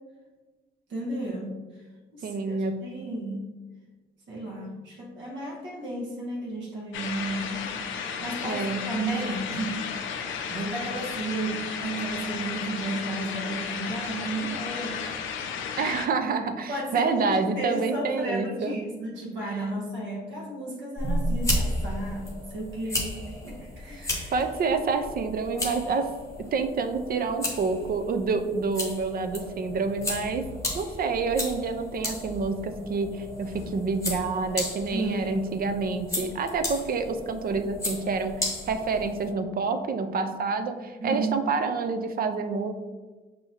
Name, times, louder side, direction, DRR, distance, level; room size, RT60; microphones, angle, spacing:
voice 1, 0.9-1.8 2.1-3.4 4.3-7.7 7.9-9.8 10.5-15.2 15.6-15.7 16.7-24.4 34.9-35.4 41.0-41.4, right 2 dB, 70° right, -3 dB, 0.9 m, -33 dB
voice 2, 2.2-2.8 8.4-8.9 15.8-18.7 24.3-26.1 26.5-30.4 30.7-42.7, right 4 dB, 50° right, 8 dB, 0.4 m, -28 dB
sound 1, 6.9-16.1, left 6 dB, 75° left, 0.5 m, -34 dB
sound 2, 21.0-39.3, left 1 dB, 15° left, 0.8 m, -34 dB
4.6 x 2.7 x 2.8 m, 1.3 s
cardioid pair, 90°, 20 cm